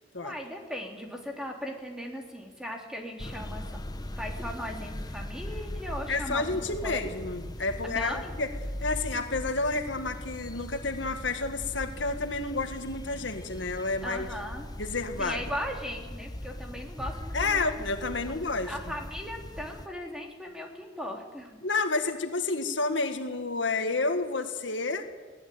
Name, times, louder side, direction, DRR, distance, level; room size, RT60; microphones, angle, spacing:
voice 1, 0.2-3.8 4.2-7.2 7.8-8.4 14.0-14.7 15.2-17.8 18.2-18.4 18.6-21.6, equal, 5° right, 1 dB, 3.2 m, -38 dB
sound 1, 3.2-19.9, left 1 dB, 20° left, 1.0 m, -39 dB
voice 2, 6.1-8.5 8.8-14.3 14.8-15.4 17.3-18.7 21.6-25.0, left 3 dB, 75° left, 6 dB, 1.9 m, -30 dB
21.5 x 17.5 x 9.3 m, 1.4 s
head